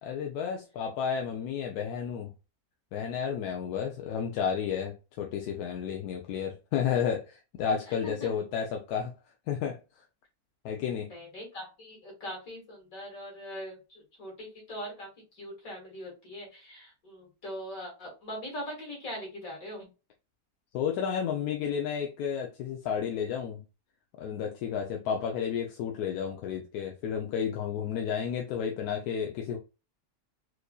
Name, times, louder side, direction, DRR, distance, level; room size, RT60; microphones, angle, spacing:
voice 1, 0.0-2.3 2.9-9.1 9.5-10.0 10.6-11.1 20.7-23.6 24.2-29.6, left 7 dB, 90° left, 1.1 m, -32 dB
voice 2, 7.9-8.3 11.1-19.9, equal, 65° left, 2.4 m, -41 dB
4.6 x 2.6 x 2.2 m
omnidirectional pair, 1.6 m